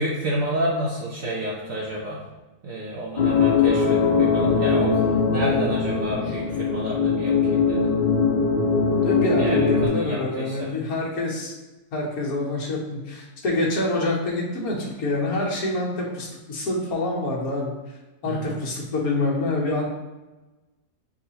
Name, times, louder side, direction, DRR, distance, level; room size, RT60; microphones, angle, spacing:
voice 1, 0.0-2.2 2.6-7.9 9.4-10.7 18.2-18.5, right 1 dB, 65° right, -5 dB, 1.0 m, -30 dB
sound 1, 3.2-9.9, left 5 dB, 50° left, 0.7 m, -21 dB
voice 2, 9.0-11.5 11.9-17.7 18.2-19.9, left 2 dB, 70° left, -2 dB, 1.4 m, -26 dB
7.0 x 2.5 x 2.8 m, 1.1 s
omnidirectional pair, 1.6 m